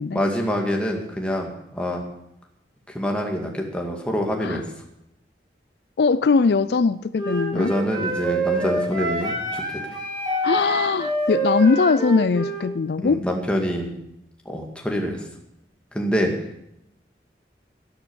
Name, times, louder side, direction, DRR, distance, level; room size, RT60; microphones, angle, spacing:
voice 1, 0.1-2.0 2.9-4.6 7.5-9.6 13.0-13.9 14.5-15.2 15.9-16.3, equal, 5° left, 1 dB, 2.1 m, -25 dB
voice 2, 6.0-7.7 10.4-13.2, left 4 dB, 70° left, 15 dB, 0.4 m, -20 dB
Wind instrument woodwind instrument, 7.2-12.6, right 1 dB, 25° right, 4.6 m, -26 dB
12.0 x 12.0 x 7.0 m, 0.80 s
head